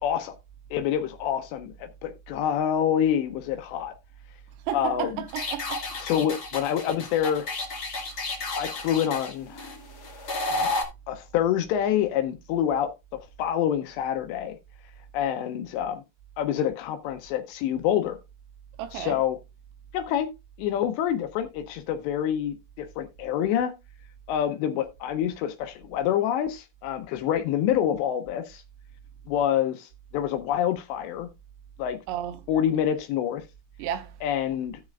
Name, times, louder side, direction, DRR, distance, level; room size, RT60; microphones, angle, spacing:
voice 1, 0.0-0.4 0.7-3.9 4.7-5.2 6.0-7.5 8.6-9.7 10.5-10.7 11.1-14.6 15.1-16.0 16.4-18.2 18.9-19.4 19.9-20.3 20.6-23.7 24.3-28.6 29.3-31.3 31.8-32.0 32.5-33.4 34.2-34.8, left 10 dB, 85° left, 3.0 m, -27 dB
voice 2, 4.7-5.8 18.8-19.2 32.1-32.4 33.8-34.1, right 11 dB, 85° right, 3.1 m, -32 dB
sound 1, 5.3-10.8, left 2 dB, 50° left, 1.2 m, -32 dB
16.0 x 6.4 x 2.4 m
omnidirectional pair, 5.0 m